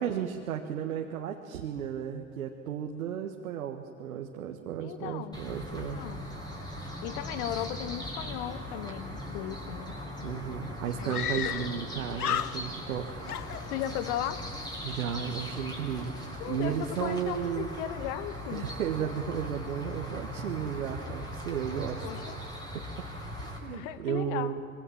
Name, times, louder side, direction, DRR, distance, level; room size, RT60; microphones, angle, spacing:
voice 1, 0.0-6.0 10.2-13.2 14.8-17.7 18.5-22.0 22.7-23.1 23.4-24.6, right 8 dB, 70° right, 3 dB, 1.7 m, -34 dB
voice 2, 4.8-5.4 5.8-6.2 7.0-9.9 11.0-11.4 13.7-14.5 16.4-18.7 22.0-22.4 23.7-24.5, left 12 dB, 55° left, 13 dB, 1.6 m, -36 dB
sound 1, 5.3-23.6, left 1 dB, 10° left, 6.2 m, -39 dB
Screaming, 10.0-10.1 10.3-10.4 11.1-11.9 12.1-12.9 13.3-14.2, left 11 dB, 85° left, 0.6 m, -33 dB
26.5 x 23.5 x 7.5 m, 2.5 s
figure-of-eight pair, 80°, 44 cm